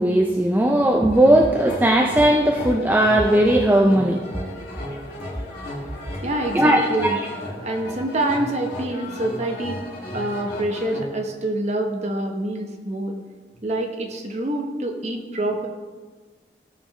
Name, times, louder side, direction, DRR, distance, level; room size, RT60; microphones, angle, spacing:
voice 1, 0.0-4.2 6.5-7.1, right 1 dB, 10° right, 1 dB, 0.4 m, -17 dB
sound 1, 1.1-11.1, left 1 dB, 55° left, 2.3 m, -35 dB
voice 2, 6.2-7.2 7.6-9.8 10.1-13.2 13.6-15.7, right 1 dB, 40° right, 3 dB, 1.0 m, -26 dB
15.5 x 5.5 x 3.2 m, 1.4 s
head